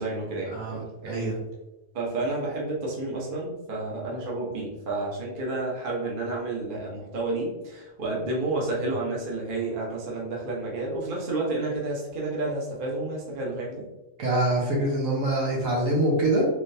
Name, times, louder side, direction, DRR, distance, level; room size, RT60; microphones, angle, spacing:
voice 1, 0.0-1.3 1.9-13.9, right 2 dB, 45° right, -3 dB, 1.0 m, -30 dB
voice 2, 0.5-1.4 14.2-16.5, right 1 dB, 75° right, -2 dB, 1.4 m, -25 dB
3.9 x 3.2 x 2.7 m, 1.0 s
omnidirectional pair, 1.4 m